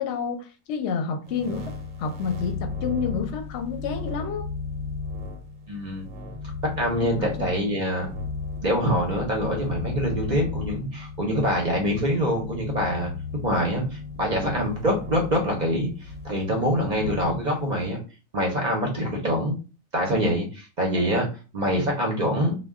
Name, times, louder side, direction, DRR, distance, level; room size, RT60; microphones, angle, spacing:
voice 1, 0.0-1.7 2.0-4.5 7.0-7.3, left 6 dB, 65° left, 4 dB, 0.8 m, -29 dB
sound 1, 1.2-17.9, left 4 dB, 85° right, 1.1 m, -35 dB
voice 2, 5.7-6.1 6.8-8.1 8.6-13.1 13.4-18.0 18.3-19.6 19.9-21.3 21.5-22.6, equal, 45° right, 0 dB, 0.6 m, -25 dB
2.2 x 2.2 x 3.4 m, 0.33 s
omnidirectional pair, 1.4 m